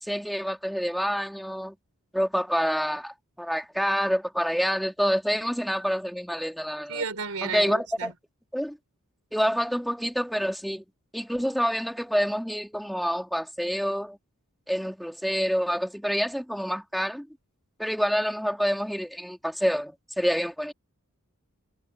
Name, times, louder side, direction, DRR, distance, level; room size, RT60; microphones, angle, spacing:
voice 1, 0.0-1.7 2.1-7.0 7.4-8.1 8.5-8.8 9.3-10.8 11.1-14.2 14.7-17.3 17.8-20.7, equal, ahead, 3.2 m, -27 dB
voice 2, 6.9-8.1, right 5 dB, 85° right, 3.6 m, -33 dB
head